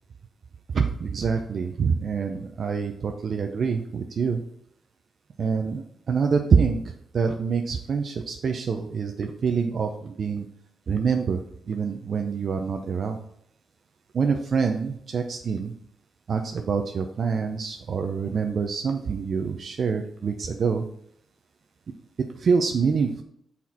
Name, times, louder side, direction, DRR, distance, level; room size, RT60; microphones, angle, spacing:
voice 1, 0.7-4.4 5.4-10.5 10.9-11.4 11.7-13.2 14.1-15.7 16.3-20.8 22.3-23.2, right 5 dB, 45° right, 5 dB, 0.5 m, -26 dB
6.2 x 4.3 x 4.3 m, 0.71 s
wide cardioid pair, 150°, 0 cm